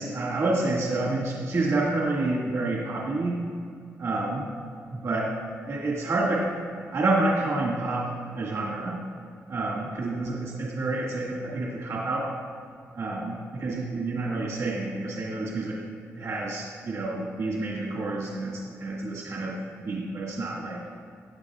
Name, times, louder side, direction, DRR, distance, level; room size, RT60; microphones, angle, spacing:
voice 1, 0.0-3.4 4.0-4.5 4.9-5.4 5.7-6.5 6.9-9.0 9.5-12.3 12.9-15.8 16.1-20.8, right 2 dB, 65° right, -5 dB, 1.9 m, -28 dB
17.0 x 10.0 x 2.4 m, 2.3 s
cardioid pair, 90°, 5 cm